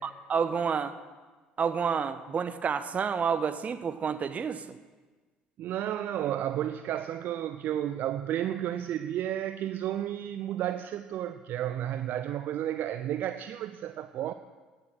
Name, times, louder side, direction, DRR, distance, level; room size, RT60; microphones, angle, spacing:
voice 1, 0.0-0.9 1.6-4.8, right 6 dB, 35° right, 11 dB, 1.1 m, -29 dB
voice 2, 5.6-14.3, right 11 dB, 50° right, 10 dB, 0.5 m, -32 dB
18.0 x 9.6 x 6.1 m, 1.3 s
figure-of-eight pair, 55°, 4 cm